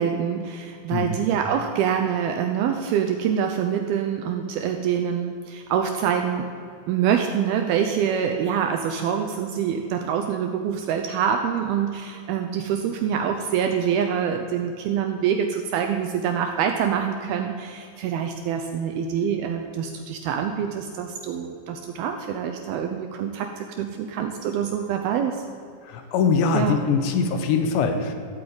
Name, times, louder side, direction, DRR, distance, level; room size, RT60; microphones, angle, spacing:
voice 1, 0.0-6.5 6.9-25.4 26.5-26.8, right 8 dB, 80° right, 4 dB, 2.3 m, -25 dB
voice 2, 25.9-28.1, left 5 dB, 80° left, 7 dB, 3.3 m, -22 dB
13.0 x 8.8 x 8.8 m, 2.5 s
omnidirectional pair, 5.1 m